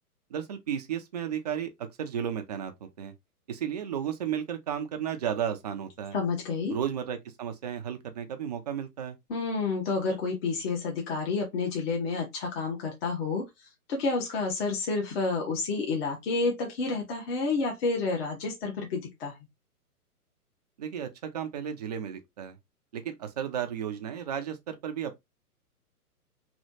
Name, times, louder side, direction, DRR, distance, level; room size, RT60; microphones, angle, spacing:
voice 1, 0.3-2.7 3.0-3.1 3.5-6.2 6.7-9.2 20.8-22.6 22.9-25.2, right 9 dB, 30° right, 0.4 m, -33 dB
voice 2, 6.1-6.8 9.3-13.5 13.9-19.3, left 4 dB, 40° left, 1.0 m, -29 dB
3.2 x 2.7 x 2.6 m
hypercardioid pair, 130°, 46 cm